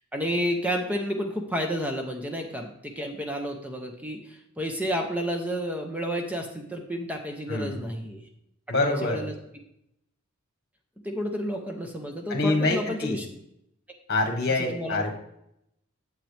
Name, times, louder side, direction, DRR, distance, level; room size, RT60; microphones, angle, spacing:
voice 1, 0.1-8.2 8.8-9.3 11.0-13.3 14.5-15.0, equal, 5° right, 3 dB, 0.8 m, -31 dB
voice 2, 7.5-7.8 8.7-9.3 12.3-13.2 14.1-15.1, left 2 dB, 50° left, 3 dB, 1.6 m, -26 dB
8.9 x 7.5 x 3.4 m, 0.79 s
head